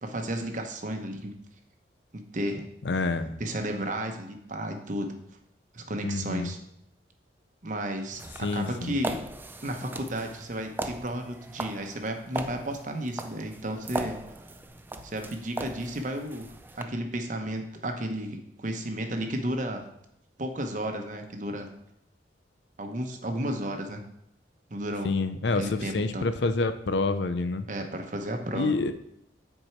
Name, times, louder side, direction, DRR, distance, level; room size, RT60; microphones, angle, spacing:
voice 1, 0.0-1.3 2.3-2.7 3.4-5.1 5.7-6.6 7.6-8.2 8.5-9.2 9.6-14.2 15.0-16.5 16.8-19.8 20.4-21.7 22.8-24.0 24.7-25.1 25.5-26.3 27.7-28.7, right 1 dB, 45° right, 4 dB, 0.9 m, -33 dB
voice 2, 2.8-3.4 6.0-6.5 8.4-9.0 25.0-27.7 28.5-28.9, left 3 dB, 75° left, 10 dB, 0.6 m, -28 dB
sound 1, 8.1-16.8, right 1 dB, 10° right, 0.3 m, -38 dB
7.8 x 4.6 x 4.5 m, 0.76 s
head